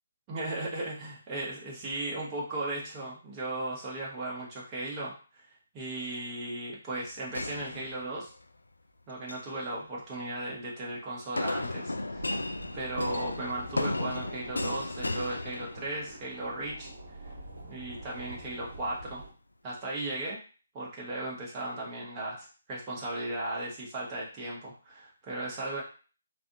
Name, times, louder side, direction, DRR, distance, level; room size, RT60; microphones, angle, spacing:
voice 1, 0.3-5.4 5.7-8.3 9.1-12.3 12.7-16.9 17.7-19.2 19.6-20.4 20.7-25.8, right 2 dB, 25° right, -4 dB, 1.2 m, -36 dB
sound 1, 7.3-8.4 9.1-9.6 11.4-16.2, left 2 dB, 85° left, 0.3 m, -34 dB
sound 2, 12.1-19.3, right 1 dB, 70° right, 0.9 m, -46 dB
3.2 x 2.4 x 2.7 m, 0.37 s
figure-of-eight pair, 145°, 0 cm